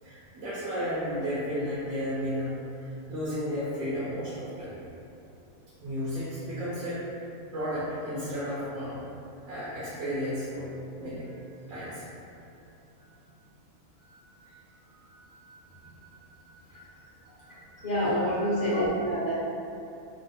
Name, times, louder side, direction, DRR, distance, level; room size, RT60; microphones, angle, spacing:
voice 1, 0.0-2.7 3.1-4.8 5.8-7.0 7.5-9.0 9.4-10.7 11.0-12.0 12.9-13.1 14.0-14.5 15.0-16.8 17.4-18.3, equal, 70° right, -10 dB, 1.0 m, -34 dB
voice 2, 17.8-19.3, equal, 40° left, -10 dB, 0.7 m, -26 dB
3.1 x 2.1 x 2.7 m, 2.6 s
omnidirectional pair, 1.6 m